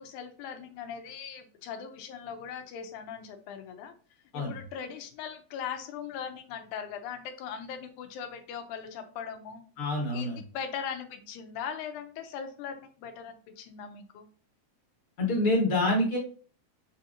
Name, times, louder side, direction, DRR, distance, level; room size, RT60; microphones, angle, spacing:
voice 1, 0.0-3.9 4.3-9.6 10.1-14.3, left 7 dB, 85° left, 7 dB, 2.2 m, -40 dB
voice 2, 9.8-10.4 15.2-16.2, left 1 dB, 55° left, -2 dB, 1.8 m, -26 dB
7.0 x 2.7 x 2.6 m, 0.39 s
omnidirectional pair, 3.5 m